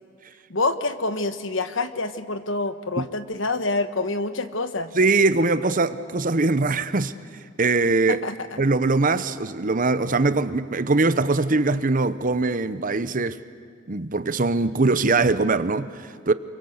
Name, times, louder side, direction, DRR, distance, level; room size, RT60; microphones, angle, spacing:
voice 1, 0.5-4.9 8.1-8.6, left 3 dB, 65° left, 1.4 m, -27 dB
voice 2, 4.9-7.1 7.6-8.2 8.6-13.4 13.9-16.3, right 3 dB, 45° right, 0.9 m, -22 dB
28.0 x 24.0 x 8.0 m
head